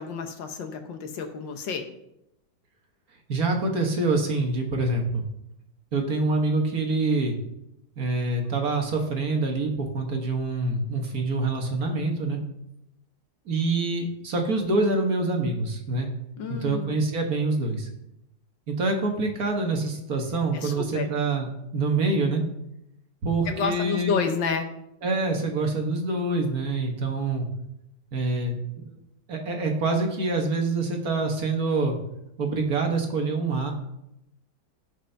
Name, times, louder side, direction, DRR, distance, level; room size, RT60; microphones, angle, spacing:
voice 1, 0.0-1.8 16.4-17.0 20.5-21.1 23.5-24.7, left 5 dB, 70° left, 6 dB, 1.6 m, -30 dB
voice 2, 3.3-5.2 5.9-7.3 8.0-12.4 13.5-16.1 16.5-17.9 18.7-21.5 21.7-22.4 23.2-24.2 25.0-27.5 28.1-28.6 28.9-29.0 29.3-31.9 32.4-33.7, right 3 dB, 50° right, 2 dB, 1.6 m, -26 dB
16.5 x 5.6 x 3.4 m, 0.82 s
omnidirectional pair, 2.1 m